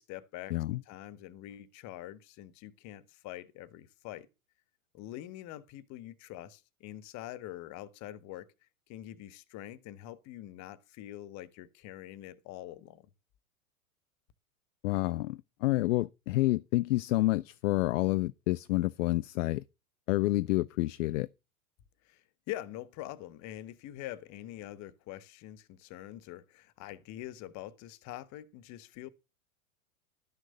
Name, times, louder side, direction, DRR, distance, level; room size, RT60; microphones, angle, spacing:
voice 1, 0.0-4.3 4.9-8.5 8.9-13.1 22.0-29.1, left 14 dB, 40° left, 1.3 m, -45 dB
voice 2, 0.5-0.8 14.8-19.6 20.1-21.3, left 19 dB, 55° left, 0.6 m, -29 dB
12.5 x 6.4 x 6.6 m
hypercardioid pair, 105°, 44 cm